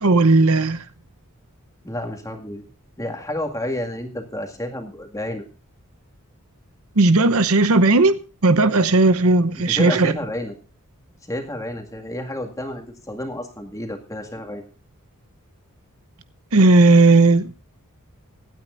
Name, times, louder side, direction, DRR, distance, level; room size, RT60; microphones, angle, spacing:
voice 1, 0.0-0.8 7.0-10.1 16.5-17.5, right 2 dB, 70° right, 0.9 m, -15 dB
voice 2, 1.8-2.6 3.0-5.5 9.6-10.6 11.3-14.7, left 1 dB, 15° left, 2.0 m, -30 dB
25.5 x 9.2 x 2.6 m
head